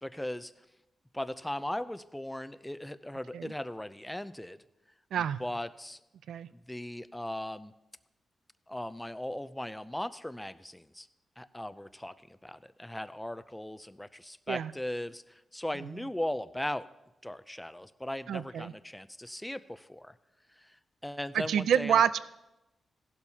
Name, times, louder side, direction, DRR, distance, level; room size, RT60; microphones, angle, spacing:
voice 1, 0.0-0.5 1.1-4.6 5.2-6.0 6.5-7.7 8.7-11.1 11.4-16.9 17.2-20.1 20.6-20.8 21.0-22.0, left 1 dB, 5° left, 13 dB, 0.5 m, -38 dB
voice 2, 18.3-18.7 21.3-22.2, right 9 dB, 85° right, 15 dB, 0.4 m, -27 dB
16.0 x 11.5 x 2.8 m, 0.95 s
cardioid pair, 105°, 0 cm